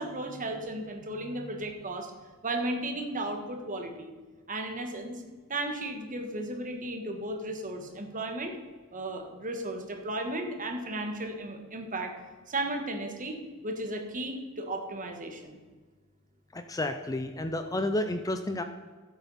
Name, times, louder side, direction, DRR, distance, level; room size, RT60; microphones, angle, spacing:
voice 1, 0.0-2.1 2.4-4.1 4.5-5.2 5.5-8.5 8.9-12.1 12.5-15.6, right 1 dB, 35° right, 4 dB, 1.5 m, -35 dB
voice 2, 16.5-18.6, left 1 dB, 15° left, 8 dB, 0.5 m, -31 dB
14.5 x 7.9 x 4.2 m, 1.4 s
head